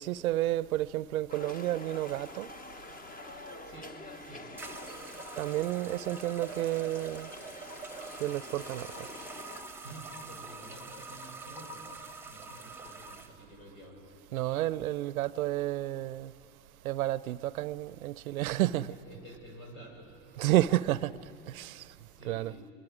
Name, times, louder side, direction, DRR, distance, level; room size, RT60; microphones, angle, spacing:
voice 1, 0.0-2.5 5.4-7.3 8.2-9.1 14.3-16.3 16.8-19.0 20.4-21.9 22.2-22.5, right 14 dB, 85° right, 0.6 m, -31 dB
sound 1, 1.3-9.6, left 2 dB, 20° left, 1.1 m, -47 dB
voice 2, 3.6-3.9 4.2-4.7 9.8-14.1 18.9-20.5 21.4-22.7, right 1 dB, 85° left, 5.9 m, -51 dB
sound 2, 3.8-3.9 4.6-13.3, right 3 dB, 5° right, 1.1 m, -45 dB
28.0 x 22.0 x 5.1 m
hypercardioid pair, 80°, 42 cm